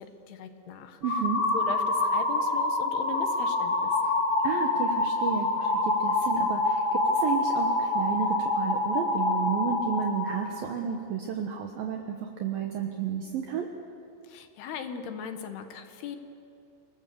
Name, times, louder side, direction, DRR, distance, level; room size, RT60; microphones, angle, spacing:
voice 1, 0.0-1.0 1.5-4.1 14.2-16.2, left 7 dB, 70° left, 7 dB, 3.2 m, -38 dB
sound 1, 1.0-10.3, left 2 dB, 40° left, 2.4 m, -26 dB
voice 2, 1.0-1.5 4.4-13.7, right 7 dB, 70° right, 3 dB, 2.5 m, -32 dB
29.0 x 19.5 x 6.9 m, 2.6 s
omnidirectional pair, 5.1 m